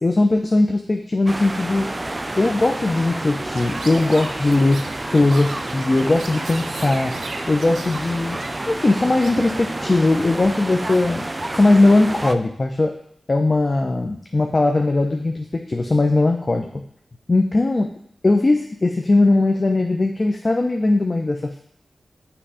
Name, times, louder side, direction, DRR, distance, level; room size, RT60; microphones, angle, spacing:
voice 1, 0.0-1.9 2.4-7.2 7.5-8.4 8.7-11.2 11.5-12.9 13.3-16.8 17.3-17.9 18.2-21.6, left 2 dB, 40° left, 3 dB, 0.7 m, -19 dB
sound 1, 1.3-12.3, right 1 dB, 25° right, 0.5 m, -30 dB
Chirp tweet, 3.5-10.4, right 3 dB, 80° right, 0.7 m, -39 dB
8.8 x 3.3 x 4.9 m, 0.69 s
cardioid pair, 45°, 0 cm